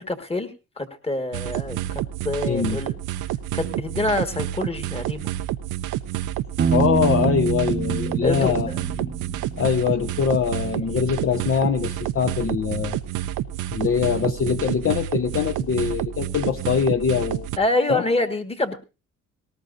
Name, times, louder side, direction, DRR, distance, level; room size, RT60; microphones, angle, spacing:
voice 1, 0.0-1.8 2.2-3.0 3.5-5.3 8.2-8.8 17.6-18.8, left 2 dB, 20° left, 8 dB, 1.7 m, -26 dB
sound 1, 1.3-17.6, right 13 dB, 90° right, 0.7 m, -29 dB
voice 2, 2.5-2.8 6.7-8.7 9.0-9.1 9.6-13.0 13.7-17.5 17.9-18.0, left 7 dB, 45° left, 8 dB, 0.8 m, -23 dB
Piano, 6.6-10.3, right 6 dB, 35° right, 0.9 m, -26 dB
18.5 x 18.5 x 2.6 m, 0.30 s
cardioid pair, 90°, 30 cm